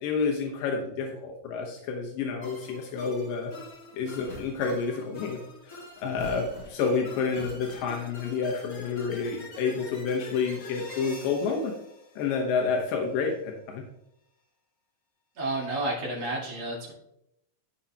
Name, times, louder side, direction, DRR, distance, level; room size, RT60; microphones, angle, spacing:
voice 1, 0.0-3.5 3.9-5.4 5.6-11.7 12.2-13.8, left 5 dB, 85° left, 1 dB, 2.7 m, -29 dB
sound 1, 2.4-12.8, left 2 dB, 35° left, 1.6 m, -45 dB
sound 2, 4.1-4.9 5.9-7.0 7.3-8.0, left 2 dB, 65° left, 3.5 m, -45 dB
voice 2, 15.4-16.9, right 2 dB, 55° right, -4 dB, 2.9 m, -31 dB
13.5 x 5.1 x 2.8 m, 0.80 s
omnidirectional pair, 3.8 m